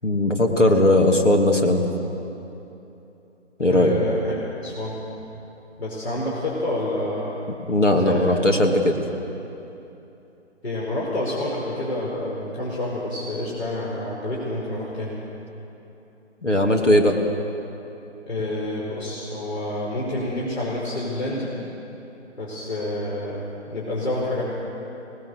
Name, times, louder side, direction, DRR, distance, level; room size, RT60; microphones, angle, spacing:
voice 1, 0.0-1.8 3.6-4.0 7.7-9.0 16.4-17.2, left 1 dB, 90° left, 3 dB, 2.7 m, -18 dB
voice 2, 3.7-4.4 4.6-5.0 5.8-7.4 7.9-8.2 10.6-15.2 18.3-21.6 22.4-24.4, left 1 dB, 60° left, -6 dB, 5.3 m, -28 dB
24.5 x 19.0 x 6.7 m, 3.0 s
figure-of-eight pair, 145°, 35 cm